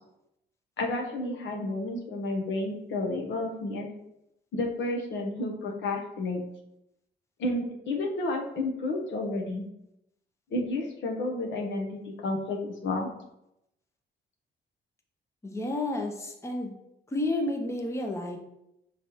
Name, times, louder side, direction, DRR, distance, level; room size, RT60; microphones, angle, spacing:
voice 1, 0.8-3.9 4.5-6.4 7.4-9.6 10.5-13.1, left 2 dB, 70° left, 2 dB, 0.9 m, -31 dB
voice 2, 15.4-16.7 17.1-18.4, left 2 dB, 15° left, 2 dB, 0.7 m, -31 dB
5.2 x 3.2 x 3.0 m, 0.84 s
cardioid pair, 90°, 20 cm